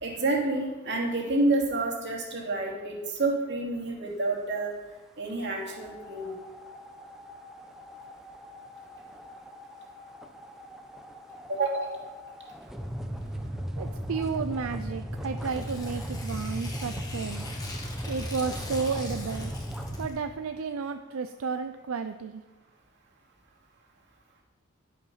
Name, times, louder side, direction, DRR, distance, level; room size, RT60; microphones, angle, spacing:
voice 1, 0.0-4.7 5.2-6.3 11.5-11.9, right 2 dB, 60° right, -2 dB, 2.6 m, -28 dB
sound 1, 5.7-20.1, equal, ahead, 0.8 m, -38 dB
voice 2, 13.8-17.5 18.1-19.5 20.0-22.4, right 5 dB, 80° right, 8 dB, 0.5 m, -32 dB
Tearing, 15.4-20.2, left 2 dB, 20° left, 1.6 m, -43 dB
11.0 x 7.2 x 5.6 m, 1.3 s
head